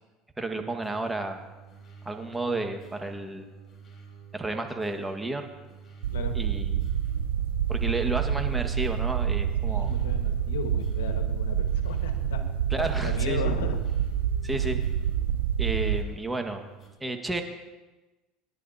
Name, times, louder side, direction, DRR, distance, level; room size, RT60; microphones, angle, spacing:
voice 1, 0.4-1.4 2.0-3.5 4.3-5.5 6.3-6.9 7.7-9.9 12.7-13.5 14.4-14.8 15.6-16.6 17.0-17.4, right 2 dB, 10° right, 4 dB, 1.7 m, -32 dB
sound 1, 0.8-16.9, right 6 dB, 30° left, 5.3 m, -50 dB
sound 2, 6.0-16.0, right 9 dB, 85° right, 0.6 m, -27 dB
voice 2, 9.6-12.4 12.8-13.8, left 6 dB, 85° left, 5 dB, 1.6 m, -36 dB
27.5 x 11.0 x 2.9 m, 1.1 s
hypercardioid pair, 85°, 0 cm